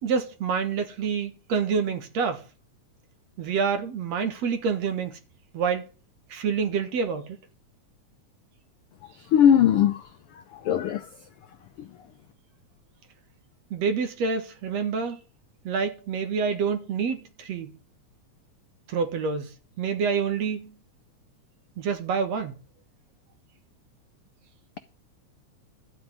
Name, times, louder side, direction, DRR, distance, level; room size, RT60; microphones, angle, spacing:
voice 1, 0.0-2.4 3.4-5.2 5.5-5.9 6.3-7.4 13.7-15.2 15.6-17.8 18.9-20.7 21.8-22.6, right 6 dB, 60° right, 2.5 m, -27 dB
voice 2, 9.3-11.1 11.8-11.9, left 9 dB, 80° left, 1.2 m, -21 dB
12.5 x 5.2 x 9.1 m
omnidirectional pair, 3.5 m